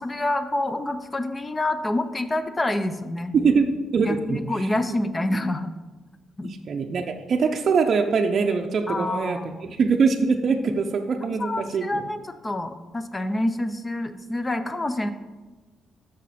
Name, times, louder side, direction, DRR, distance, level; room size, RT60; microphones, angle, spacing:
voice 1, 0.0-3.3 4.0-5.7 6.4-6.5 8.9-9.6 11.4-15.1, left 1 dB, 20° left, 10 dB, 0.5 m, -27 dB
voice 2, 3.3-3.7 3.9-4.7 6.4-12.0, right 5 dB, 50° right, 3 dB, 0.5 m, -23 dB
6.3 x 6.0 x 4.2 m, 1.3 s
cardioid pair, 90°, 0 cm